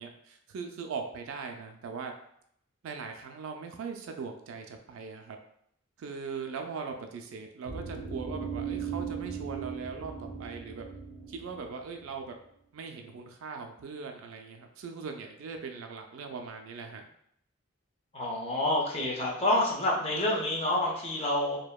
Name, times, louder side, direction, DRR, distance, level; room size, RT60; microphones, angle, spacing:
voice 1, 0.0-2.1 2.8-5.4 6.0-10.9 11.3-12.4 12.7-17.1, right 5 dB, 75° right, 4 dB, 0.3 m, -40 dB
sound 1, 7.6-11.8, right 6 dB, 15° left, 1.0 m, -38 dB
voice 2, 18.1-21.6, left 1 dB, 30° left, -3 dB, 0.6 m, -28 dB
2.7 x 2.1 x 2.2 m, 0.71 s
head